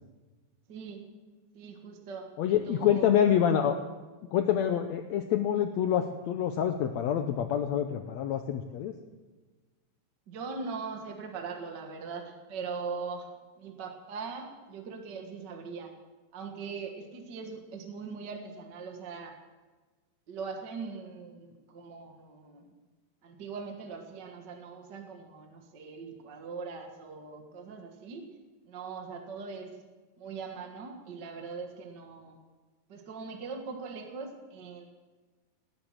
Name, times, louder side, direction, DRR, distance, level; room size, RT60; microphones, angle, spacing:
voice 1, 0.7-1.0 1.5-3.1 10.3-13.3 13.5-15.9 16.3-19.3 20.3-22.7 23.2-28.3 28.6-29.7 30.2-32.4 32.9-34.9, right 5 dB, 45° right, 3 dB, 1.5 m, -41 dB
voice 2, 2.4-3.8 4.3-8.9, left 9 dB, 90° left, 7 dB, 1.5 m, -26 dB
18.5 x 10.5 x 7.5 m, 1.3 s
omnidirectional pair, 4.1 m